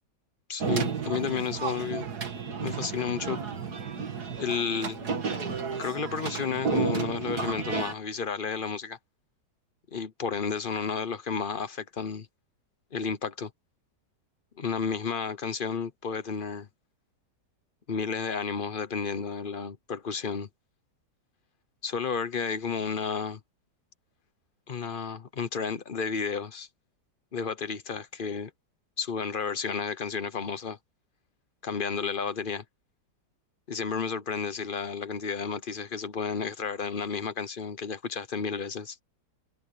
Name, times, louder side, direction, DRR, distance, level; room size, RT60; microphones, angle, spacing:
voice 1, 0.5-2.1 2.6-3.4 4.4-5.0 5.8-9.0 9.9-12.3 12.9-13.5 14.6-16.7 17.9-20.5 21.8-23.4 24.7-26.7 27.3-28.5 29.0-30.8 31.6-32.6 33.7-39.0, left 5 dB, 35° left, 0.9 m, -32 dB
sound 1, 0.6-7.9, right 5 dB, 60° right, 2.5 m, -32 dB
omnidirectional pair, 1.9 m